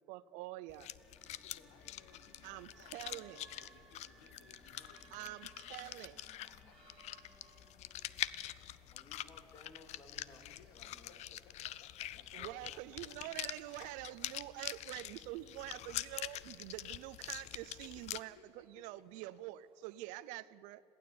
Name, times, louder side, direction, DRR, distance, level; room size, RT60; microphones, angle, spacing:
voice 1, 0.1-0.9 2.4-3.5 5.1-6.2 12.3-20.8, right 17 dB, 70° right, 18 dB, 0.7 m, -46 dB
sound 1, 0.7-18.2, left 14 dB, 55° left, 0.7 m, -45 dB
sound 2, 1.0-12.0, right 2 dB, ahead, 4.1 m, -65 dB
voice 2, 1.2-5.4 5.9-6.8 7.5-7.6 10.4-14.2 14.6-14.7 17.6-19.0 19.3-19.4, left 7 dB, 80° left, 10 dB, 1.7 m, -65 dB
sound 3, 2.1-20.4, right 5 dB, 40° right, 2.3 m, -70 dB
voice 3, 8.9-11.4 12.1-12.6, left 2 dB, 30° left, 5 dB, 3.4 m, -59 dB
22.0 x 15.5 x 8.6 m, 2.9 s
supercardioid pair, 85°, 13 cm